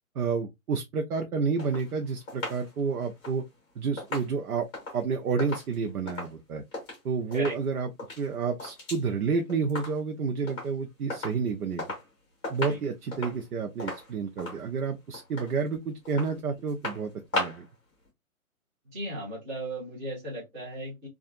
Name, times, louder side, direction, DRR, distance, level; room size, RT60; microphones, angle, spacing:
voice 1, 0.1-3.4 3.8-4.7 4.9-6.6 7.0-7.9 8.2-11.8 12.5-17.7, right 5 dB, 85° right, 0.7 m, -30 dB
sound 1, 1.6-7.0 7.3-7.7 7.9-9.1 9.3-10.2 10.5-10.8 11.1-12.1 12.4-17.8 18.1-18.2, left 2 dB, 10° left, 1.1 m, -38 dB
voice 2, 18.9-21.1, right 1 dB, 15° right, 0.9 m, -36 dB
2.7 x 2.4 x 2.4 m
hypercardioid pair, 155°, 43 cm